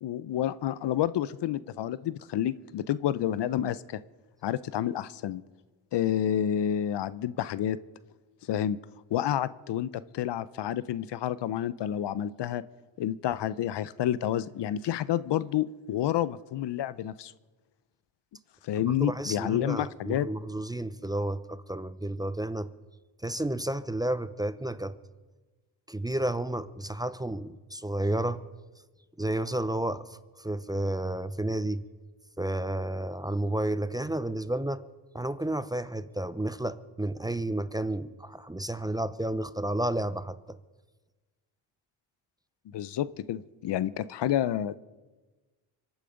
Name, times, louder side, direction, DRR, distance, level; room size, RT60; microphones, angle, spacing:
voice 1, 0.0-4.0 4.4-5.4 5.9-7.8 8.5-8.8 9.1-12.6 13.0-17.3 18.6-20.3 42.7-44.8, left 11 dB, 60° left, 17 dB, 0.7 m, -29 dB
voice 2, 18.7-22.7 23.2-24.9 25.9-28.4 29.2-31.8 32.4-34.8 35.1-40.6, right 1 dB, 10° right, 13 dB, 0.6 m, -31 dB
25.0 x 9.0 x 5.1 m, 1.2 s
cardioid pair, 70°, 48 cm